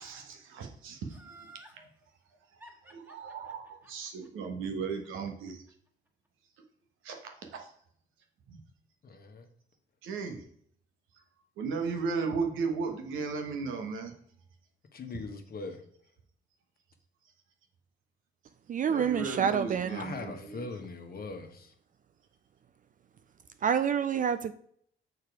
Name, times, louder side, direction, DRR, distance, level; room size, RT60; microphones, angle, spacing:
voice 1, 0.0-1.9 2.5-2.6 2.8-5.6 7.0-7.7 8.5-8.6 10.0-10.4 11.6-14.1 18.9-20.7, right 5 dB, 90° right, 3 dB, 1.3 m, -36 dB
Laughter, 1.1-1.8 2.6-5.7 6.1-6.2, right 2 dB, 10° right, 1.6 m, -53 dB
voice 2, 9.0-9.5 14.9-15.8 19.9-21.7, left 3 dB, 50° left, 6 dB, 1.2 m, -41 dB
voice 3, 18.7-20.0 23.6-24.5, right 7 dB, 45° right, 11 dB, 0.4 m, -27 dB
6.7 x 4.7 x 4.8 m, 0.65 s
cardioid pair, 90°, 20 cm